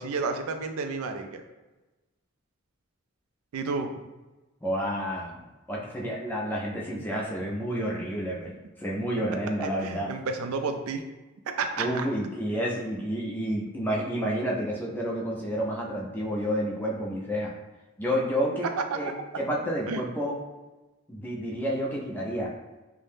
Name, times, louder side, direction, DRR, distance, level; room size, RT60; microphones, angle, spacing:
voice 1, 0.0-1.4 3.5-3.9 9.6-11.0 11.6-12.1 18.9-19.0 19.9-20.0, right 4 dB, 85° right, 6 dB, 0.3 m, -31 dB
voice 2, 4.6-5.4 5.7-10.1 11.8-17.5 18.0-20.4 21.1-22.5, equal, 10° left, -3 dB, 0.3 m, -30 dB
2.6 x 2.0 x 3.3 m, 1.1 s
head